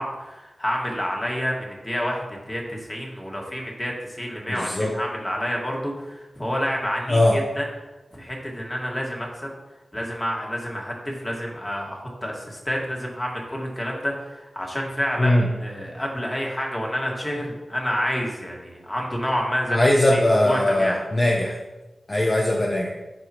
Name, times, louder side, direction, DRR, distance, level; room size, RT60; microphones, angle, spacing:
voice 1, 0.0-7.6 8.1-9.5 9.9-21.0, equal, 20° left, -1 dB, 1.9 m, -29 dB
voice 2, 4.5-4.9 7.1-7.4 15.2-15.4 19.7-21.6 22.1-22.9, left 1 dB, 35° left, -2 dB, 0.9 m, -20 dB
12.0 x 4.9 x 3.1 m, 1.1 s
cardioid pair, 60°, 0 cm